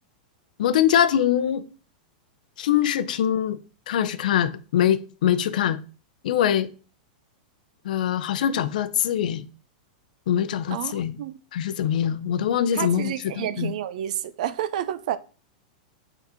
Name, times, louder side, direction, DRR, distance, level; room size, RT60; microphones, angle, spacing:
voice 1, 0.6-1.6 2.6-3.6 3.9-5.8 6.2-6.7 7.8-9.5 10.3-11.2 11.5-13.7, left 10 dB, 70° left, 0.6 m, -23 dB
voice 2, 12.7-15.2, right 11 dB, 60° right, 0.5 m, -29 dB
5.9 x 4.0 x 4.4 m
supercardioid pair, 165°, 5 cm